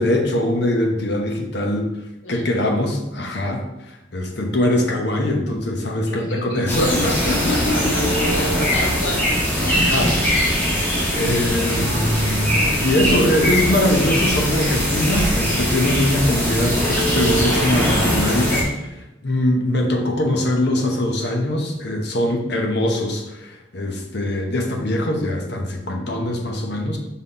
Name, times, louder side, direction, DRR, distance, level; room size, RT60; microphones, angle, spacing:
voice 1, 0.0-1.9 2.3-3.6 4.1-7.8 8.6-8.9 9.6-10.4 11.2-18.9 19.2-27.0, left 1 dB, 60° left, 2 dB, 1.0 m, -22 dB
voice 2, 2.2-2.6 6.0-9.3 9.6-9.8, left 1 dB, 90° left, -2 dB, 1.6 m, -29 dB
sound 1, 6.7-18.6, equal, 10° left, 1.7 m, -21 dB
5.8 x 4.1 x 4.2 m, 0.94 s
head